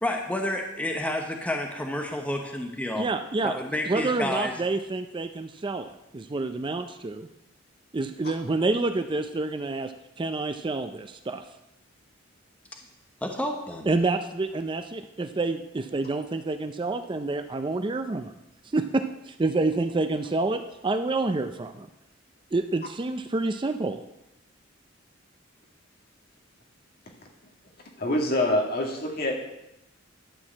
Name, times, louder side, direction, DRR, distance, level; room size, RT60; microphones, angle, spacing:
voice 1, 0.0-3.0 3.4-4.5 13.2-13.9, left 1 dB, 5° left, 2 dB, 0.9 m, -30 dB
voice 2, 3.0-3.5 3.9-5.9 6.1-7.3 7.9-9.9 10.2-11.4 13.9-18.3 18.7-21.9 22.5-24.0, right 3 dB, 25° right, 8 dB, 0.4 m, -28 dB
voice 3, 28.0-29.3, left 1 dB, 50° left, 1 dB, 1.9 m, -25 dB
11.5 x 4.7 x 7.3 m, 0.88 s
head